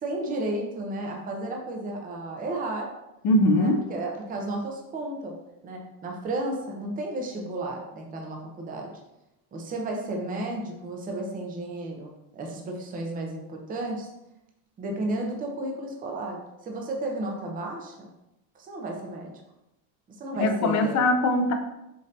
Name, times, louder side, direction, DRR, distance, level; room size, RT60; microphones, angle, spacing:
voice 1, 0.0-2.9 3.6-5.4 5.6-8.9 9.5-14.1 14.8-18.1 18.5-19.3 20.2-21.0, right 2 dB, 20° right, 1 dB, 0.5 m, -33 dB
voice 2, 3.2-3.8 20.4-21.5, left 2 dB, 40° left, 6 dB, 0.5 m, -21 dB
5.3 x 2.6 x 2.6 m, 0.90 s
cardioid pair, 145°, 45 cm